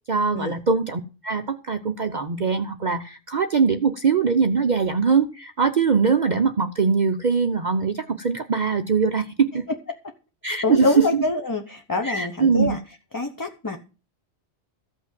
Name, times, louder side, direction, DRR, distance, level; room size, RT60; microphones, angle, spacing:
voice 1, 0.1-9.6 10.4-11.2 12.0-12.8, right 5 dB, 45° right, 7 dB, 0.7 m, -22 dB
voice 2, 10.6-12.8 13.1-13.8, left 3 dB, 20° left, 5 dB, 0.9 m, -25 dB
14.5 x 6.0 x 7.5 m, 0.34 s
omnidirectional pair, 1.2 m